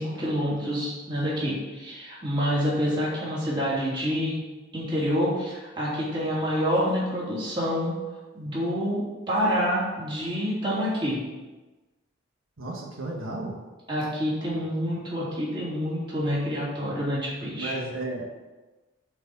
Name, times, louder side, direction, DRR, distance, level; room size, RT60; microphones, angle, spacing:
voice 1, 0.0-4.4 4.7-7.9 8.3-11.2 13.9-17.7, equal, 25° right, -7 dB, 2.9 m, -27 dB
voice 2, 12.6-13.5 17.6-18.2, right 2 dB, 80° right, -1 dB, 1.4 m, -33 dB
7.8 x 4.8 x 6.9 m, 1.2 s
head